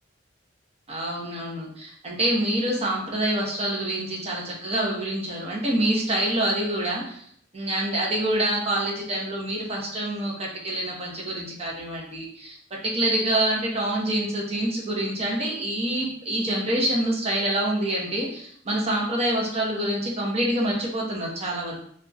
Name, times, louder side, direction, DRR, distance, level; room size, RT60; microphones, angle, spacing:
voice 1, 0.9-7.2 7.5-12.6 12.8-21.8, right 1 dB, 30° right, -2 dB, 0.7 m, -26 dB
2.4 x 2.2 x 3.8 m, 0.63 s
head